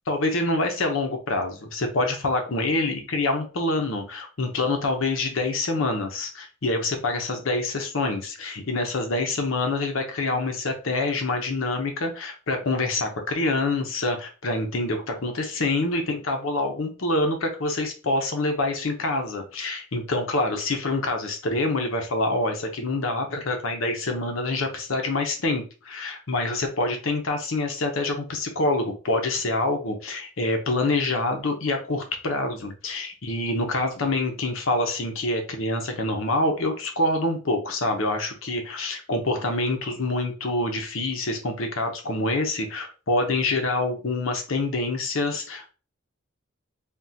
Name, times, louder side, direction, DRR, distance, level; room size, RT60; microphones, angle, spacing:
voice 1, 0.1-45.7, left 2 dB, 90° left, 4 dB, 0.8 m, -26 dB
3.6 x 2.4 x 2.7 m, 0.34 s
head